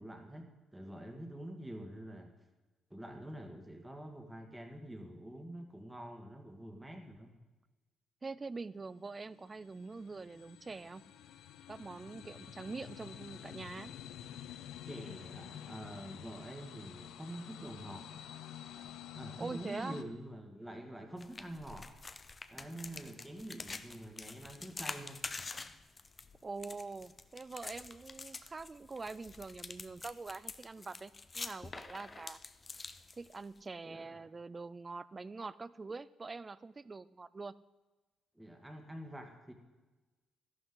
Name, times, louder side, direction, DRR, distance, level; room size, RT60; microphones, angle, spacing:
voice 1, 0.0-2.3 2.9-7.3 14.9-18.2 19.1-21.9 22.5-25.2 33.8-34.2 38.4-39.5, right 1 dB, 10° right, 3 dB, 1.9 m, -46 dB
voice 2, 8.2-11.0 11.7-13.9 19.4-20.0 26.4-32.4 33.2-37.5, right 3 dB, 30° right, 18 dB, 0.4 m, -44 dB
sound 1, 8.4-20.0, left 10 dB, 85° left, 0.6 m, -50 dB
sound 2, 21.2-33.6, left 3 dB, 30° left, 0.6 m, -47 dB
13.0 x 11.5 x 3.8 m, 1.2 s
cardioid pair, 90°, 0 cm